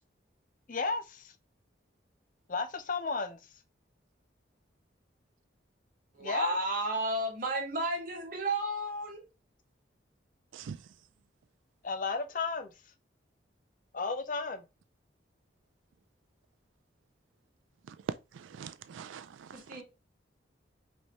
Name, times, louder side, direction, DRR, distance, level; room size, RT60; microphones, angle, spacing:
voice 1, 0.7-1.3 2.5-3.4 6.2-6.5 11.8-12.7 13.9-14.6, left 4 dB, 45° left, 0.5 m, -33 dB
voice 2, 6.1-9.3 19.5-19.8, right 2 dB, 45° right, 1.4 m, -33 dB
voice 3, 10.5-10.9 17.9-19.8, right 6 dB, 85° right, 0.3 m, -42 dB
5.2 x 3.3 x 3.0 m
head